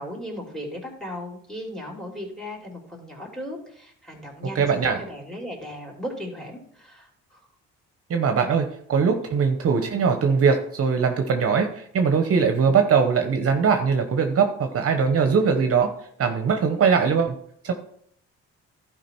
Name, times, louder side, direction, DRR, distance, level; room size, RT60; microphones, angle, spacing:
voice 1, 0.0-7.4, equal, ahead, 1 dB, 3.1 m, -36 dB
voice 2, 4.5-5.0 8.1-15.9 16.2-17.3 17.6-17.7, right 6 dB, 50° right, 6 dB, 1.0 m, -21 dB
12.0 x 5.0 x 4.5 m, 0.65 s
cardioid pair, 90°, 30 cm